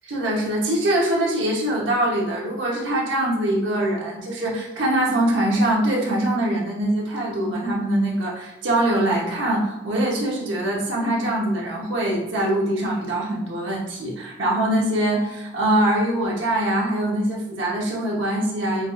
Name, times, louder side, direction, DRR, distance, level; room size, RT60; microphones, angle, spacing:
voice 1, 0.1-18.9, right 1 dB, 90° right, -3 dB, 1.0 m, -23 dB
5.5 x 2.4 x 2.5 m, 0.92 s
head